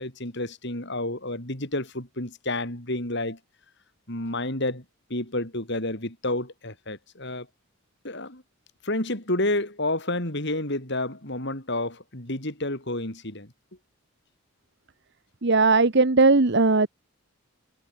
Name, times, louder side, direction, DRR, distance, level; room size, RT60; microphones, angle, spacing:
voice 1, 0.0-3.4 4.1-4.8 5.1-7.5 8.0-8.4 8.8-13.5, left 1 dB, 50° left, 5.0 m, -30 dB
voice 2, 15.4-16.9, right 3 dB, 55° right, 1.1 m, -18 dB
head